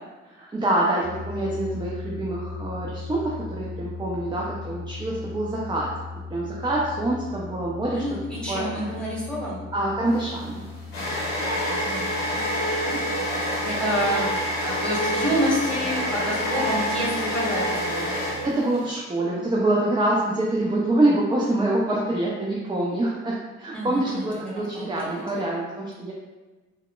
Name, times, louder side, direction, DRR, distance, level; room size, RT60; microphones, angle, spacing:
voice 1, 0.3-5.9 6.3-8.2 8.5-8.9 9.7-10.6 18.4-26.1, right 1 dB, 15° right, -4 dB, 0.4 m, -25 dB
sound 1, 1.0-18.5, left 4 dB, 40° left, 0.7 m, -39 dB
voice 2, 7.9-9.6 11.6-13.0 13.6-14.3 14.6-18.1 23.7-25.4, equal, 5° left, -6 dB, 1.4 m, -29 dB
sound 2, 10.1-18.8, equal, 90° left, 0.7 m, -27 dB
3.4 x 2.0 x 2.2 m, 1.2 s
hypercardioid pair, 40°, 34 cm